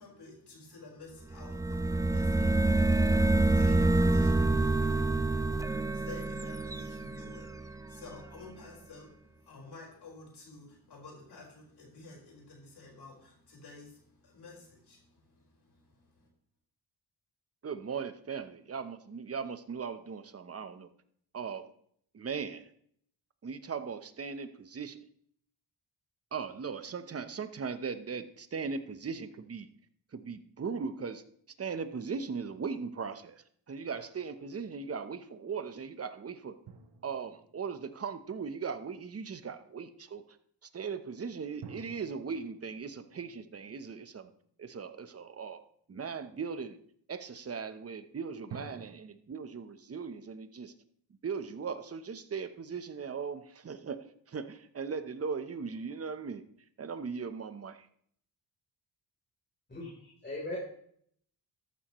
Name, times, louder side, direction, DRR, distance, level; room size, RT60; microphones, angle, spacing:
voice 1, 0.0-5.4 5.7-16.3, left 3 dB, 65° left, -1 dB, 4.9 m, -51 dB
sound 1, 1.3-8.0, right 2 dB, 10° right, 0.3 m, -27 dB
voice 2, 17.6-20.9 21.3-21.7 22.1-22.7 23.4-25.0 26.3-29.7 30.1-31.2 31.6-36.6 37.0-40.2 40.7-44.3 44.6-46.8 47.1-50.7 51.2-56.4 56.8-57.9, right 5 dB, 35° right, 11 dB, 0.9 m, -38 dB
sound 2, 36.7-38.6 41.6-44.9 48.5-49.0, right 5 dB, 65° right, 1.3 m, -51 dB
voice 3, 59.7-60.6, left 2 dB, 25° left, -5 dB, 3.6 m, -39 dB
13.5 x 11.5 x 3.1 m, 0.64 s
cardioid pair, 100°, 43 cm